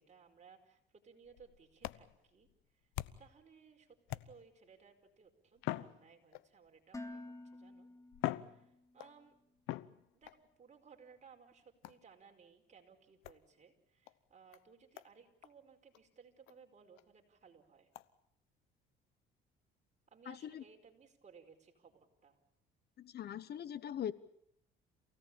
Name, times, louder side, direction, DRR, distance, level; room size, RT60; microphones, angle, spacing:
voice 1, 0.0-2.5 3.2-7.9 8.4-9.4 10.1-17.9 20.1-22.4, right 6 dB, 35° right, 3 dB, 5.0 m, -61 dB
sound 1, 1.2-3.4 4.1-4.7 5.6-6.7 7.5-7.6 8.1-9.2 9.7-10.4 11.8-12.1 13.2-13.4 14.1-14.2 14.5-14.6 15.0-15.1 15.4-15.5 15.9-16.0 16.5-16.6 17.0-17.1 17.9-18.1, left 16 dB, 85° left, 0.9 m, -43 dB
Dishes pots and pans, 6.9-9.0, left 2 dB, 15° left, 2.3 m, -50 dB
voice 2, 20.3-20.6 23.0-24.1, left 10 dB, 55° left, 17 dB, 1.1 m, -41 dB
28.5 x 17.5 x 8.7 m, 0.74 s
cardioid pair, 90°, 20 cm